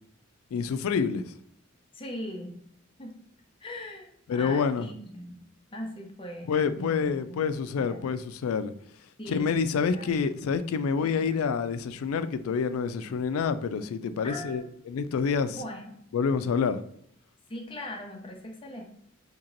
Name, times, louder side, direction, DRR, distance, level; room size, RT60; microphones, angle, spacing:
voice 1, 0.5-1.3 4.3-4.9 6.5-8.7 9.3-15.6 16.1-16.8, left 6 dB, 90° left, 0.3 m, -27 dB
voice 2, 1.9-2.6 3.0-3.2 3.6-5.4 5.7-7.4 7.8-8.1 9.2-10.1 11.0-11.3 14.2-14.7 15.5-15.9 17.5-18.8, left 1 dB, 25° left, 0.6 m, -40 dB
2.9 x 2.9 x 3.8 m
head